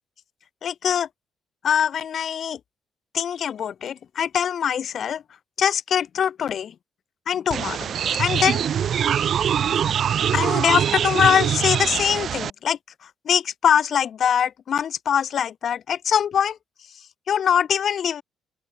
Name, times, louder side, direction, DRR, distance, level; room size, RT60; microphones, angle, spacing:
voice 1, 0.6-1.1 1.6-2.6 3.1-5.2 5.6-6.7 7.3-8.6 10.3-16.6 17.3-18.2, left 8 dB, 60° left, 0.8 m, -23 dB
sound 1, 7.5-12.5, right 8 dB, 60° right, 1.1 m, -23 dB
open air
cardioid pair, 90°, 0 cm